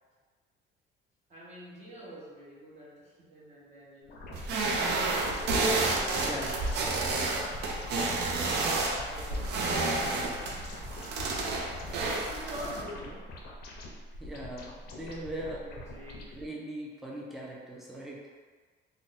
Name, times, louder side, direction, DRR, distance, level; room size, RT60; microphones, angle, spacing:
voice 1, 1.3-4.2 4.8-5.7 6.7-8.0 8.9-9.9 12.3-13.3 15.6-16.4, equal, 35° right, -7 dB, 1.0 m, -45 dB
sound 1, 4.1-16.4, left 1 dB, 55° left, 0.5 m, -44 dB
sound 2, 4.3-12.8, right 3 dB, 60° right, 0.5 m, -30 dB
voice 2, 6.2-6.6 14.2-15.7 16.3-18.3, right 1 dB, ahead, -4 dB, 0.4 m, -40 dB
2.5 x 2.1 x 3.9 m, 1.5 s
cardioid pair, 165°, 20 cm